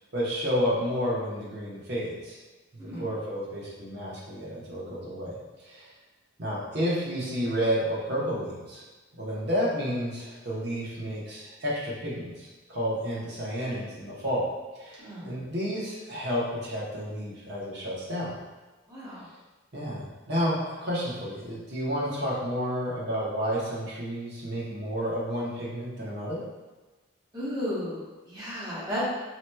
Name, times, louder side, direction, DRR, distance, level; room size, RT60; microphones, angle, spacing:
voice 1, 0.1-2.4 3.0-5.3 5.6-5.9 6.4-8.8 9.2-14.5 14.7-18.3 19.7-20.0 20.3-26.4, equal, 55° right, -6 dB, 0.9 m, -31 dB
voice 2, 18.9-19.3 27.3-29.0, equal, 20° right, -9 dB, 0.9 m, -34 dB
4.3 x 2.9 x 2.2 m, 1.2 s
head